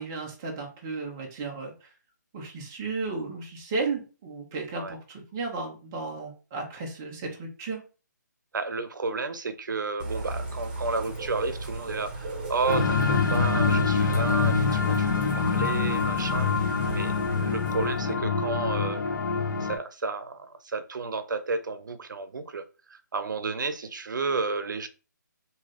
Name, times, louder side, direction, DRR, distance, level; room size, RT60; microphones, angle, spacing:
voice 1, 0.0-1.9 2.3-7.8, right 3 dB, 10° right, 0.3 m, -34 dB
voice 2, 8.5-16.6 16.9-19.0 19.6-22.6 22.9-24.9, right 4 dB, 85° right, 0.5 m, -32 dB
Bird / Rain, 10.0-18.1, right 2 dB, 30° right, 0.7 m, -37 dB
sound 1, 12.7-19.8, left 4 dB, 80° left, 0.8 m, -25 dB
3.2 x 2.6 x 2.4 m
hypercardioid pair, 175°, 10 cm